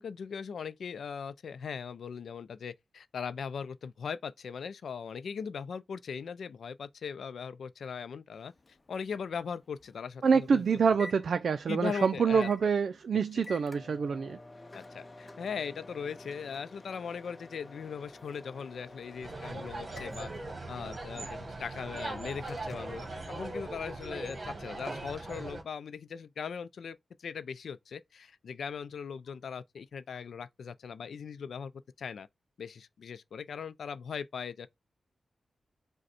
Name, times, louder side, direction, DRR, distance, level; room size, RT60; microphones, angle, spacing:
voice 1, 0.0-8.5 8.9-10.6 10.9-11.1 11.7-12.5 13.1-13.4 14.7-20.3 20.7-31.7 32.0-32.3 32.6-34.7, left 6 dB, 85° left, 0.4 m, -39 dB
Microwave oven, 8.3-24.0, left 2 dB, 30° left, 0.7 m, -51 dB
voice 2, 10.2-14.4, right 5 dB, 70° right, 0.4 m, -26 dB
sound 1, 19.2-25.6, right 2 dB, 45° right, 1.3 m, -40 dB
5.1 x 2.2 x 4.2 m
wide cardioid pair, 110°, 0 cm